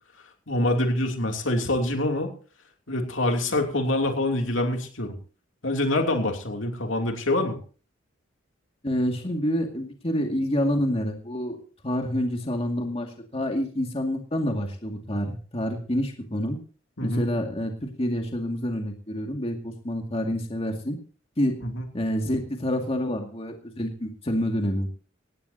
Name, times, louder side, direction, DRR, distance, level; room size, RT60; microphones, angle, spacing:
voice 1, 0.5-2.3 2.9-5.2 5.6-7.6 17.0-17.3 21.6-21.8, left 1 dB, 80° left, 3 dB, 2.9 m, -25 dB
voice 2, 8.8-11.6 11.8-16.6 17.0-21.0 21.4-21.6 21.9-24.9, equal, 30° left, 3 dB, 2.2 m, -28 dB
18.0 x 16.0 x 2.8 m, 0.39 s
head